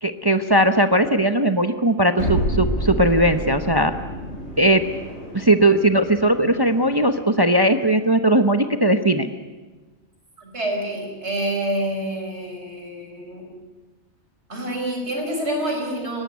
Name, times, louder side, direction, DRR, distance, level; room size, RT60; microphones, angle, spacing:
voice 1, 0.0-3.9 4.6-4.8 5.3-9.3, right 1 dB, 20° right, 8 dB, 0.8 m, -18 dB
sound 1, 2.2-7.3, equal, 50° left, 7.4 m, -29 dB
voice 2, 10.4-13.5 14.5-16.2, right 1 dB, 55° right, 2 dB, 5.3 m, -27 dB
22.5 x 18.5 x 9.5 m, 1.3 s
omnidirectional pair, 1.4 m